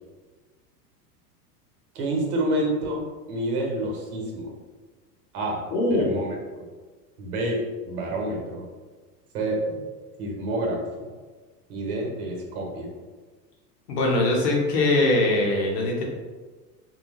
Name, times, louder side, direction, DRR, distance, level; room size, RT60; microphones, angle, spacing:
voice 1, 1.9-3.0 3.3-4.5 5.3-5.6 5.9-6.3 7.2-8.6 9.3-9.6 10.2-11.1 11.7-12.9, right 1 dB, 65° right, 0 dB, 0.9 m, -28 dB
voice 2, 5.7-6.2 13.9-16.0, left 2 dB, 75° left, -1 dB, 1.0 m, -22 dB
2.7 x 2.1 x 3.0 m, 1.4 s
hypercardioid pair, 110°, 48 cm